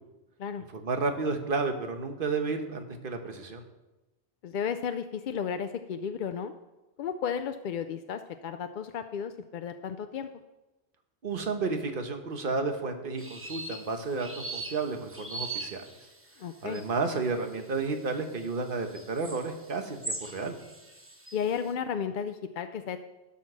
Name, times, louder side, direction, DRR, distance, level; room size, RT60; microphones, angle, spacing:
voice 1, 0.7-3.6 11.2-15.8 16.6-20.6, right 4 dB, 55° right, 5 dB, 1.2 m, -32 dB
voice 2, 4.4-6.5 7.0-10.3 16.4-16.8 21.3-23.0, left 7 dB, 60° left, 8 dB, 0.6 m, -33 dB
sound 1, 13.2-21.6, right 3 dB, 15° right, 1.0 m, -41 dB
12.0 x 5.8 x 6.1 m, 1.0 s
omnidirectional pair, 1.1 m